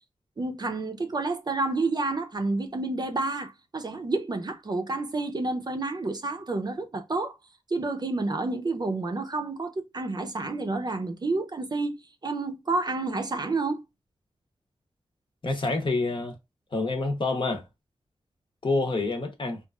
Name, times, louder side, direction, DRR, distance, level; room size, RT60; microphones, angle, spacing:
voice 1, 0.4-7.3 7.7-11.9 12.2-13.8, right 3 dB, 40° right, 0.5 m, -29 dB
voice 2, 15.4-16.4 16.7-17.6 18.6-19.6, left 3 dB, 50° left, 0.8 m, -27 dB
3.0 x 2.4 x 2.2 m
wide cardioid pair, 75°, 11 cm